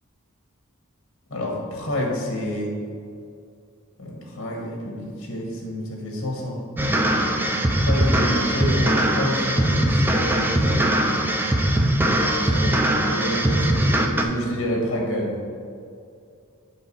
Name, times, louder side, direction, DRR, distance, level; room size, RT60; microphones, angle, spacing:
voice 1, 1.3-2.7 4.0-6.6 7.7-10.8 12.5-15.4, left 1 dB, 60° left, 0 dB, 1.4 m, -28 dB
sound 1, 6.8-14.2, right 1 dB, 10° right, 0.4 m, -21 dB
7.8 x 5.3 x 4.2 m, 2.4 s
head